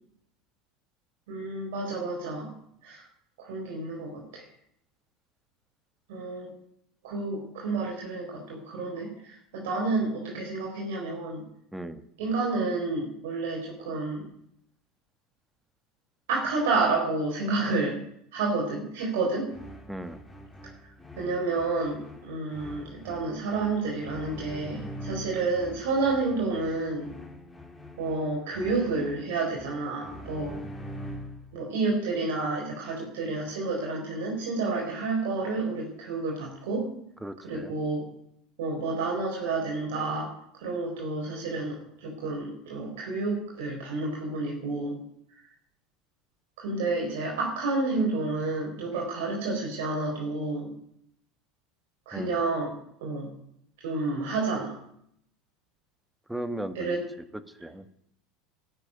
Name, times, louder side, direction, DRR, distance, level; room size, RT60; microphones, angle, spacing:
voice 1, 1.3-2.5 2.8-3.0 3.4-4.4 6.1-6.5 7.0-11.4 12.2-14.2 16.3-18.0 18.3-19.5 21.2-27.1 28.0-30.6 31.5-36.9 37.4-38.1 38.6-45.0 46.6-50.7 52.1-52.7 53.0-53.3 53.8-54.7 56.7-57.0, right 3 dB, 75° right, -1 dB, 4.0 m, -30 dB
voice 2, 11.7-12.0 19.9-20.2 37.2-37.7 52.1-52.3 56.3-57.0 57.5-57.8, right 1 dB, 5° right, 11 dB, 1.4 m, -36 dB
sound 1, 19.5-31.5, equal, 10° left, 3.0 m, -43 dB
12.5 x 8.8 x 9.8 m, 0.74 s
hypercardioid pair, 90°, 0 cm